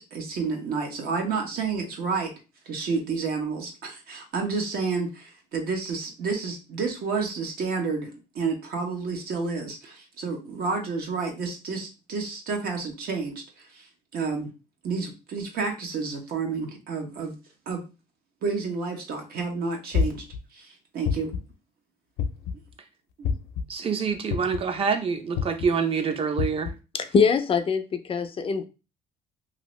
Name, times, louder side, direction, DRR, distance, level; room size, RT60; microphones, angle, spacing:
voice 1, 0.0-2.3 2.7-8.1 8.3-13.9 14.1-14.5 14.8-17.3 17.7-17.8 18.4-20.2 20.5-21.3 23.2-23.4, right 4 dB, 65° right, 0.9 m, -30 dB
sound 1, 19.9-20.4 21.0-21.5 22.2-22.6 23.2-23.6 24.3-24.7 25.3-25.7 26.4-26.7, left 6 dB, 90° left, 0.5 m, -26 dB
voice 2, 23.7-26.7, right 5 dB, 35° right, 0.6 m, -26 dB
voice 3, 26.9-28.7, left 5 dB, 35° left, 0.4 m, -23 dB
2.7 x 2.6 x 3.1 m
cardioid pair, 110°, 17 cm